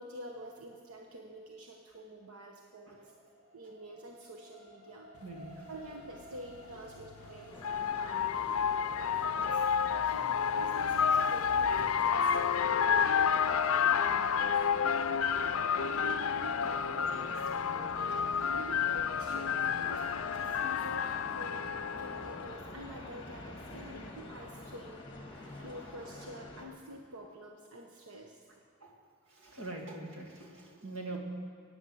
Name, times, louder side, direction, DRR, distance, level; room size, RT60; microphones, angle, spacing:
voice 1, 0.0-3.1 3.5-5.1 5.7-8.6 9.0-9.6 10.0-14.6 15.8-21.7 22.0-25.0 25.6-28.5 31.1-31.2, right 1 dB, 85° right, 1 dB, 1.2 m, -47 dB
sound 1, 2.2-14.7 15.3-15.4, right 1 dB, 35° right, 4.1 m, -58 dB
voice 2, 5.2-5.9 6.3-7.5 8.0-8.1 9.4-9.5 11.7-11.9 20.0-20.1 22.2-22.3 25.3-25.9 27.1-27.2 28.8-29.0 29.3-31.2, right 2 dB, 65° right, 0 dB, 2.3 m, -46 dB
sound 2, 5.4-5.5 7.0-22.6, left 7 dB, 75° left, 0.5 m, -30 dB
sound 3, 7.5-26.7, left 2 dB, 20° left, 1.9 m, -47 dB
17.5 x 9.7 x 7.9 m, 2.1 s
head